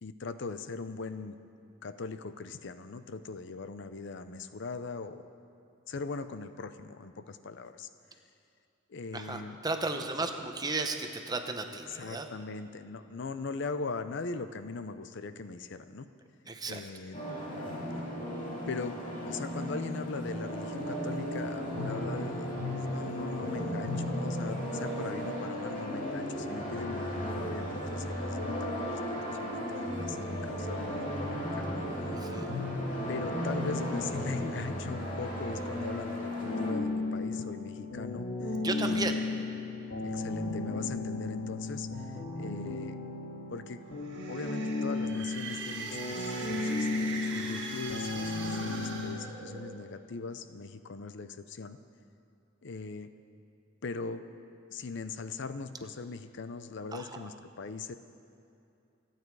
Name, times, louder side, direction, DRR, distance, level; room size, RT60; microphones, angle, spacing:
voice 1, 0.0-1.4 1.8-5.2 5.9-7.9 8.9-9.6 11.9-16.1 16.7-17.2 18.7-19.0 19.3-22.5 22.7-29.0 29.2-31.7 33.1-39.5 40.0-43.0 43.5-51.8 52.6-53.1 53.8-54.3 54.7-57.9, left 4 dB, 65° left, 11 dB, 0.6 m, -40 dB
voice 2, 9.1-12.3 16.5-16.8 32.1-32.5 38.6-39.2 56.9-57.0, right 3 dB, 20° right, 5 dB, 0.9 m, -34 dB
sound 1, 17.1-36.7, equal, 40° left, 2.5 m, -35 dB
sound 2, 36.5-49.2, left 3 dB, 80° left, 1.8 m, -34 dB
sound 3, 43.9-50.0, right 3 dB, 60° right, 1.7 m, -41 dB
27.5 x 9.2 x 4.7 m, 2.6 s
head